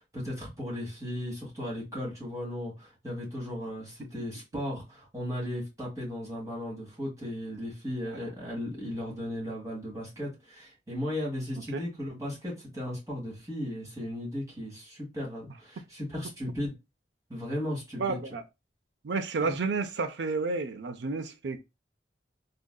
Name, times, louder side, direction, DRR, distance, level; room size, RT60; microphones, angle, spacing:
voice 1, 0.1-16.7 17.3-18.2 19.4-19.5, left 1 dB, 20° right, 1.5 m, -36 dB
voice 2, 18.0-18.4 19.0-21.6, right 4 dB, 65° right, 0.5 m, -31 dB
3.7 x 2.4 x 2.2 m
head